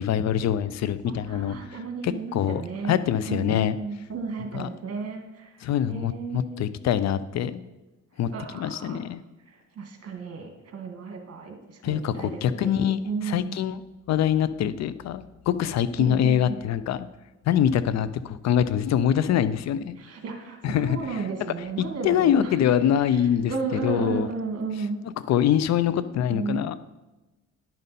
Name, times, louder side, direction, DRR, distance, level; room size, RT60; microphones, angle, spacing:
voice 1, 0.0-3.8 4.5-4.7 5.6-7.6 8.2-9.2 11.8-17.1 17.5-20.0 20.6-21.5 22.0-24.3 25.2-26.8, left 9 dB, 60° left, 14 dB, 0.5 m, -24 dB
voice 2, 1.0-3.0 3.3-5.5 5.9-6.7 8.3-9.0 9.5-13.6 16.0-16.6 20.0-22.5 22.8-22.9 23.5-25.0 25.9-26.6, right 4 dB, 50° right, 3 dB, 1.8 m, -33 dB
10.5 x 5.3 x 4.1 m, 1.1 s
cardioid pair, 90°, 30 cm